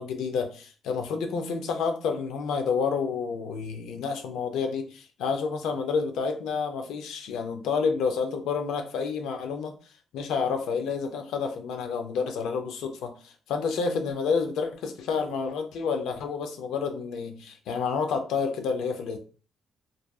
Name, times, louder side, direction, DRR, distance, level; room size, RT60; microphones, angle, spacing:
voice 1, 0.0-9.8 10.1-19.2, left 5 dB, 85° left, 6 dB, 0.4 m, -29 dB
2.5 x 2.3 x 2.2 m, 0.38 s
cardioid pair, 90°, 0 cm